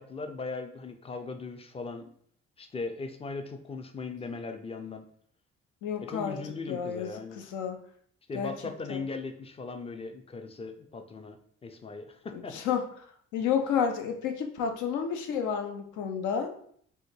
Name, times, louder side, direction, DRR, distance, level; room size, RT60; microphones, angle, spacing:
voice 1, 0.0-2.1 2.6-5.0 6.0-7.4 8.3-12.6, left 4 dB, 20° left, 6 dB, 0.4 m, -39 dB
voice 2, 5.8-6.4 6.7-7.1 7.5-7.8 8.3-8.5 8.9-9.0 12.5-12.9 13.3-16.5, left 7 dB, 70° left, 5 dB, 0.6 m, -30 dB
3.4 x 2.1 x 3.1 m, 0.63 s
hypercardioid pair, 50°, 31 cm